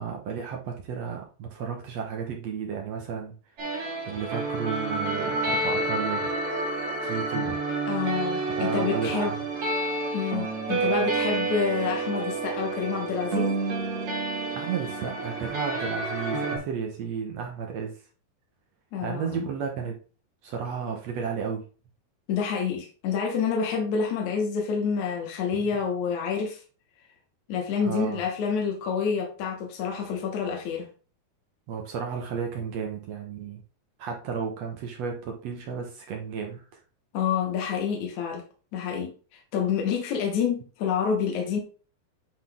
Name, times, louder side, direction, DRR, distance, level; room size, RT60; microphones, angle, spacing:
voice 1, 0.0-3.4 4.1-6.3 7.0-7.6 8.6-9.4 14.5-18.0 19.0-19.9 20.4-21.6 25.6-25.7 27.8-28.2 31.7-33.6 34.0-36.6, right 6 dB, 70° right, 1.6 m, -33 dB
sound 1, 3.6-16.6, right 3 dB, 45° right, 2.6 m, -29 dB
voice 2, 7.9-9.3 10.1-13.6 18.9-19.5 22.3-26.6 27.5-30.9 37.1-38.4 38.7-41.6, left 6 dB, 60° left, 2.3 m, -28 dB
9.8 x 4.0 x 3.5 m
omnidirectional pair, 4.3 m